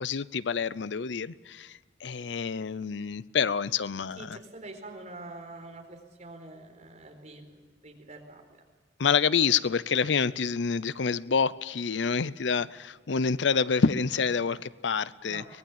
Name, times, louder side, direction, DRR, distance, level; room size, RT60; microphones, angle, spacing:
voice 1, 0.0-4.4 9.0-15.4, left 6 dB, 75° left, 0.6 m, -27 dB
voice 2, 4.2-8.6 15.2-15.5, right 2 dB, 40° right, 4.2 m, -46 dB
24.0 x 20.0 x 7.3 m
head